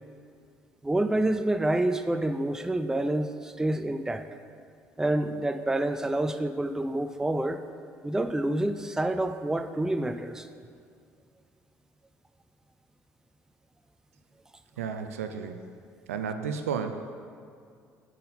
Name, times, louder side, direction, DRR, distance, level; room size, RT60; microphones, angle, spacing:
voice 1, 0.8-4.2 5.0-7.6 8.0-10.5, right 1 dB, 5° right, 9 dB, 0.4 m, -28 dB
voice 2, 14.8-15.6 16.1-17.0, right 6 dB, 75° right, 7 dB, 0.4 m, -32 dB
9.3 x 3.9 x 5.5 m, 2.3 s
figure-of-eight pair, 55°, 8 cm